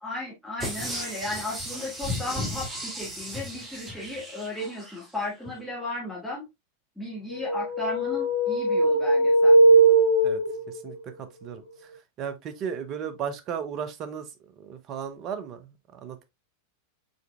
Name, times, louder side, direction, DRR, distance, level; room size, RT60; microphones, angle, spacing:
voice 1, 0.0-6.4 7.0-9.5, left 2 dB, ahead, 1.5 m, -35 dB
sound 1, 0.6-5.0 5.5-5.6, equal, 15° right, 1.6 m, -35 dB
sound 2, 7.3-10.9, right 2 dB, 90° right, 2.6 m, -20 dB
voice 2, 10.8-11.9 12.2-14.3 14.6-16.2, right 7 dB, 35° right, 0.7 m, -35 dB
5.2 x 3.9 x 2.2 m
figure-of-eight pair, 90°, 0 cm